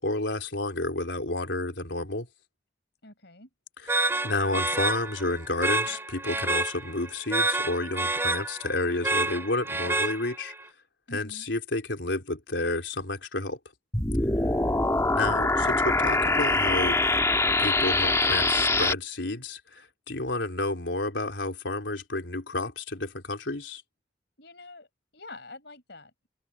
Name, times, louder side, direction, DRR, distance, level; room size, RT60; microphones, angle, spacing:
voice 1, 0.0-2.3 3.8-10.5 11.1-13.6 15.1-17.0 17.6-23.8, left 2 dB, 90° left, 3.7 m, -31 dB
voice 2, 3.0-3.5 11.1-11.5 14.8-15.4 24.4-24.9 25.1-26.3, left 2 dB, 65° left, 6.4 m, -46 dB
sound 1, 3.9-10.6, right 2 dB, 15° right, 2.5 m, -29 dB
sound 2, 13.9-18.9, left 2 dB, 15° left, 1.8 m, -24 dB
open air
head